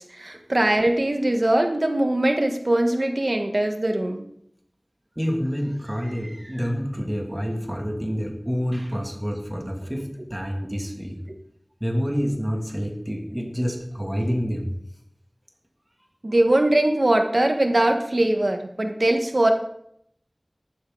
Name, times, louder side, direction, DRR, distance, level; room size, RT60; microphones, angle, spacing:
voice 1, 0.0-4.2 16.2-19.5, right 1 dB, 65° right, 4 dB, 1.6 m, -21 dB
voice 2, 5.2-11.2 11.8-14.6, equal, 15° right, 1 dB, 2.7 m, -28 dB
14.5 x 12.0 x 4.0 m, 0.72 s
wide cardioid pair, 40°, 0 cm